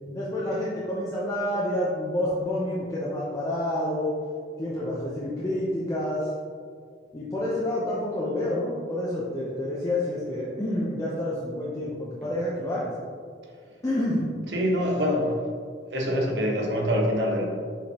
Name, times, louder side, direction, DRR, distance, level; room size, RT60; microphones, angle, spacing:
voice 1, 0.0-4.1 4.6-6.3 7.1-12.9 13.8-14.3, left 1 dB, 20° left, -7 dB, 0.7 m, -28 dB
voice 2, 14.5-15.4 15.9-17.4, equal, 90° right, -1 dB, 1.2 m, -24 dB
7.2 x 5.0 x 2.9 m, 2.1 s
head